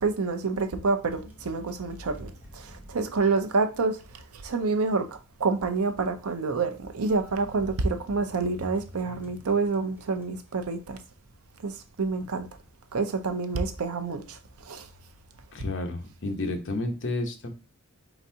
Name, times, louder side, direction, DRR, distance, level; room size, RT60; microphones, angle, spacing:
voice 1, 0.0-4.0 4.4-5.1 5.4-11.0 11.6-11.7 12.0-12.5 12.9-14.4 14.7-14.8, right 4 dB, 85° right, 0.6 m, -27 dB
sound 1, 1.1-4.1 7.1-10.5, left 1 dB, 10° right, 0.7 m, -47 dB
voice 2, 15.5-17.5, left 2 dB, 60° left, 0.9 m, -31 dB
4.5 x 3.9 x 2.7 m
head